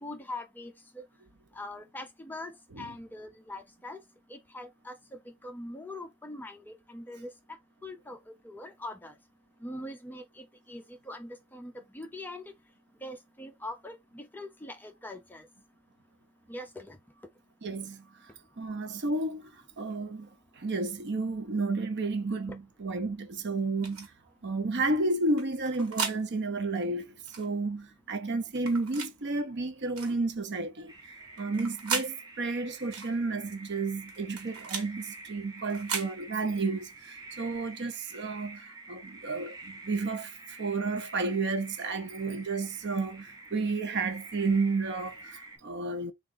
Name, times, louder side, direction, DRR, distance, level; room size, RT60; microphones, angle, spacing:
voice 1, 0.0-1.0 1.5-4.0 4.3-8.2 8.4-9.2 9.6-12.4 13.0-15.5 16.5-17.0 18.2-18.3, left 1 dB, 10° left, 0.4 m, -42 dB
voice 2, 17.6-18.1 18.6-19.5 19.8-20.3 20.6-24.1 24.4-30.9 31.4-46.1, right 3 dB, 50° right, 0.6 m, -31 dB
sound 1, 23.8-24.1 25.4-26.2 27.3-27.5 28.6-29.1 30.0-30.2 31.4-32.1 32.9-33.1 34.1-34.9 35.7-36.1, right 5 dB, 70° right, 1.3 m, -35 dB
sound 2, 30.9-45.6, right 2 dB, 15° right, 0.9 m, -48 dB
3.5 x 2.4 x 3.7 m
head